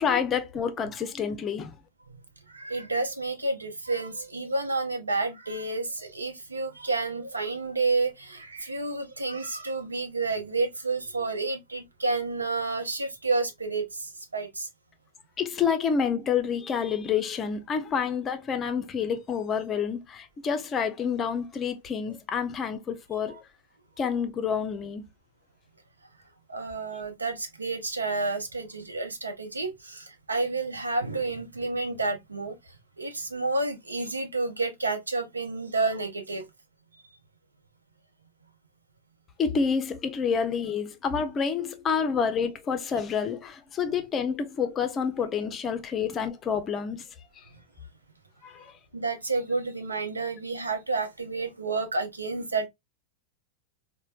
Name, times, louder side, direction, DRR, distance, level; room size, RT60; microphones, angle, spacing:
voice 1, 0.0-1.7 15.4-23.4 24.0-25.1 39.4-47.1 48.4-48.8, left 6 dB, 25° left, 0.5 m, -28 dB
voice 2, 2.5-14.7 23.3-23.4 26.5-32.5 33.0-36.4 48.9-52.7, right 3 dB, 80° right, 0.7 m, -30 dB
4.3 x 2.1 x 2.4 m
figure-of-eight pair, 90°, 0 cm